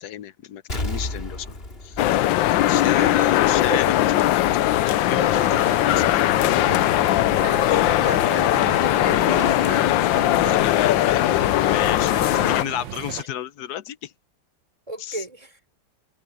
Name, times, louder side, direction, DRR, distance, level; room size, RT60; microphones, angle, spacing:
voice 1, 0.0-2.0 2.7-6.1 6.6-7.4 10.4-11.2 11.6-14.1 15.0-15.2, left 11 dB, 65° left, 1.2 m, -32 dB
Explosion, 0.7-3.3 3.6-3.7, left 2 dB, 30° left, 3.2 m, -32 dB
sound 1, 2.0-12.6, left 14 dB, 80° left, 1.4 m, -20 dB
voice 2, 2.7-3.3 3.7-3.8 7.3-10.0 14.9-15.6, right 1 dB, 15° right, 4.8 m, -34 dB
sound 2, 5.1-13.2, right 11 dB, 85° right, 1.7 m, -36 dB
omnidirectional pair, 2.1 m